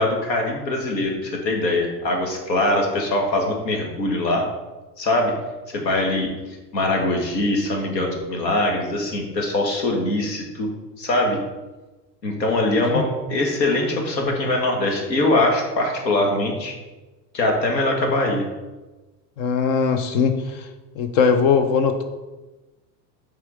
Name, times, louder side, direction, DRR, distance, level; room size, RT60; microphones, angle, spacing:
voice 1, 0.0-4.4 5.0-5.3 5.7-6.3 6.7-10.7 11.0-11.4 12.2-16.7 17.3-18.4, left 2 dB, 90° left, 1 dB, 1.4 m, -22 dB
voice 2, 19.4-20.7 21.0-22.0, left 6 dB, 60° left, 8 dB, 0.7 m, -20 dB
6.0 x 3.6 x 4.7 m, 1.1 s
hypercardioid pair, 85°, 49 cm